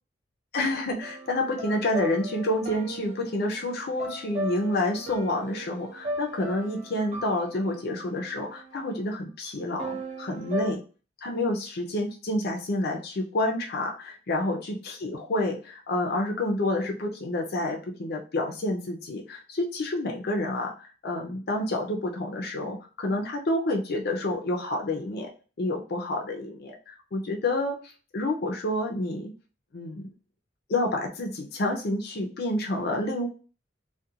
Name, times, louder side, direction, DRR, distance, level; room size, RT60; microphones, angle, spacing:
voice 1, 0.5-10.8 11.2-25.3 25.6-29.3 29.7-30.1 30.7-33.3, left 1 dB, 55° left, 0 dB, 0.5 m, -29 dB
sound 1, 1.0-9.0 9.8-10.7, right 1 dB, 35° right, 0.5 m, -37 dB
2.4 x 2.2 x 2.7 m, 0.35 s
head